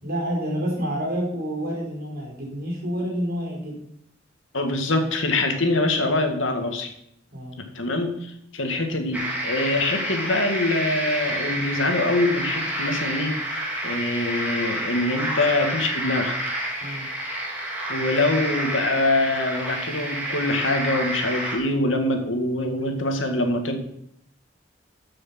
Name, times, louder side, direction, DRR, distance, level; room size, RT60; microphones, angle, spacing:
voice 1, 0.0-3.8 7.3-7.6 7.9-8.0 16.8-17.1, equal, 55° right, -2 dB, 4.8 m, -28 dB
voice 2, 4.5-6.9 7.7-16.5 17.9-23.8, left 2 dB, 85° left, 5 dB, 2.1 m, -24 dB
sound 1, 9.1-21.6, right 1 dB, 10° right, 3.2 m, -29 dB
13.5 x 6.4 x 6.1 m, 0.72 s
head